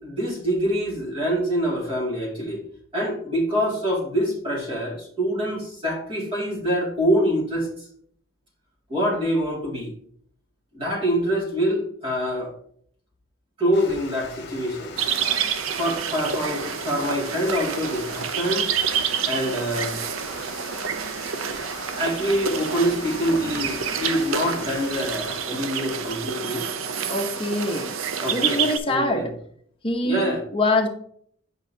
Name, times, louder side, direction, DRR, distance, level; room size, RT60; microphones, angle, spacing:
voice 1, 0.0-2.6 2.9-7.7 8.9-9.9 10.7-12.5 13.6-15.0 15.7-18.7 19.3-20.0 22.0-26.7 28.2-29.3 30.0-30.4, equal, 25° right, -3 dB, 2.3 m, -25 dB
Water, 13.7-25.4, left 4 dB, 55° left, 1.1 m, -41 dB
sound 1, 15.0-28.8, right 7 dB, 80° right, 0.6 m, -28 dB
voice 2, 27.1-28.0 28.3-29.3 29.8-30.9, left 2 dB, 25° left, 4 dB, 0.9 m, -24 dB
8.8 x 5.5 x 2.8 m, 0.63 s
head